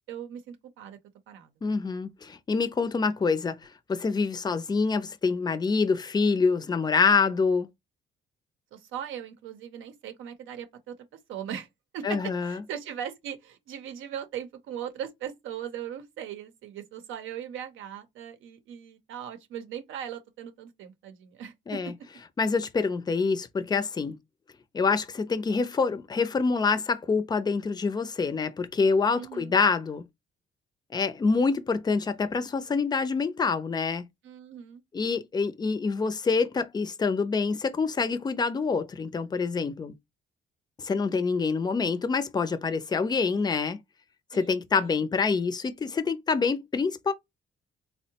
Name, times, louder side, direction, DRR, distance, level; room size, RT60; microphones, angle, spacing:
voice 1, 0.1-1.0 1.3-1.5 8.7-11.0 11.3-11.7 11.9-21.8 29.2-29.5 34.2-34.8 44.3-45.0, right 9 dB, 80° right, 0.6 m, -39 dB
voice 2, 1.6-3.6 3.9-7.7 12.0-12.6 21.7-21.9 22.4-24.2 24.7-30.0 30.9-34.0 34.9-39.9 40.8-43.8 44.3-47.1, left 4 dB, 20° left, 0.4 m, -26 dB
3.5 x 2.1 x 2.7 m
cardioid pair, 90°, 20 cm